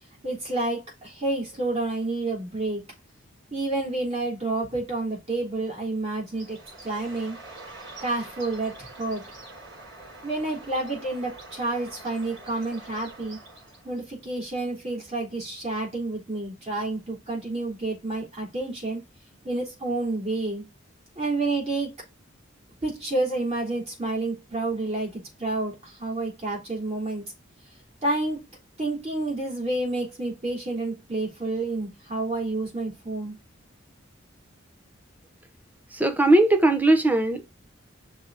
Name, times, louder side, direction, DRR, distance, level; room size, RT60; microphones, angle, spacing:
voice 1, 0.2-2.8 3.5-6.6 6.8-7.4 8.0-9.2 10.2-13.4 13.8-19.0 19.4-20.6 21.2-21.9 22.8-27.3 28.0-28.4 28.8-33.3, right 2 dB, 30° right, 3.7 m, -29 dB
Bird, 6.3-14.0, right 2 dB, 60° right, 4.4 m, -45 dB
voice 2, 35.9-37.4, right 2 dB, 10° right, 0.9 m, -19 dB
5.9 x 4.0 x 4.9 m
head